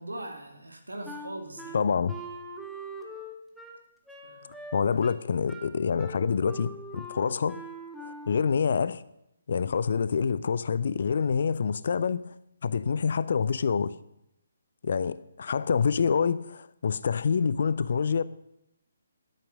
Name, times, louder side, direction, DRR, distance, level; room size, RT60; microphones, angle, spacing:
voice 1, 0.0-1.8 4.2-4.6, right 1 dB, 75° right, 2.3 m, -40 dB
Wind instrument woodwind instrument, 1.0-8.5, right 1 dB, ahead, 1.1 m, -42 dB
voice 2, 1.7-2.2 4.7-7.6 8.0-9.0 9.5-12.3 12.6-14.0 14.8-18.2, left 6 dB, 50° left, 0.5 m, -26 dB
11.5 x 8.7 x 6.2 m
figure-of-eight pair, 140°, 0 cm